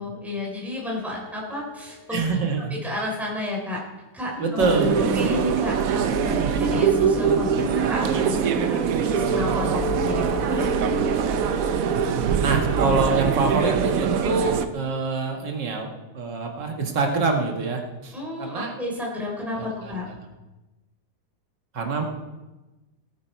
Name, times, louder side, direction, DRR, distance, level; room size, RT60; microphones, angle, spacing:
voice 1, 0.0-2.2 2.7-3.8 4.1-4.7 5.0-10.7 18.1-20.0, left 2 dB, ahead, -3 dB, 3.3 m, -31 dB
sound 1, 1.0-1.8 4.3-12.1, equal, 40° left, 2.9 m, -32 dB
voice 2, 2.1-2.7 4.4-5.3 6.3-6.6 12.4-18.1 18.4-18.7 19.6-20.0 21.7-22.0, right 4 dB, 75° right, 2 dB, 2.2 m, -25 dB
sound 2, 4.6-14.7, right 7 dB, 60° right, 1.0 m, -23 dB
17.5 x 9.4 x 4.6 m, 1.1 s
omnidirectional pair, 1.9 m